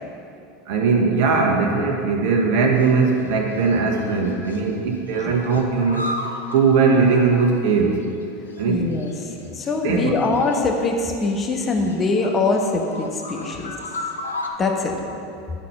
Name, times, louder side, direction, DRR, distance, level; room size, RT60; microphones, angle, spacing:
voice 1, 0.7-6.0 6.5-7.9 8.6-8.8 9.8-10.2, right 4 dB, 60° right, 1 dB, 1.3 m, -19 dB
sound 1, 2.8-3.3 3.6-4.6 4.9-8.2 8.5-8.6 8.9-10.8 11.2-14.5, left 1 dB, 90° left, 0.7 m, -35 dB
voice 2, 8.7-13.7 14.6-15.0, left 3 dB, 30° left, 2 dB, 1.2 m, -23 dB
10.5 x 4.2 x 5.8 m, 2.7 s
hypercardioid pair, 85°, 0 cm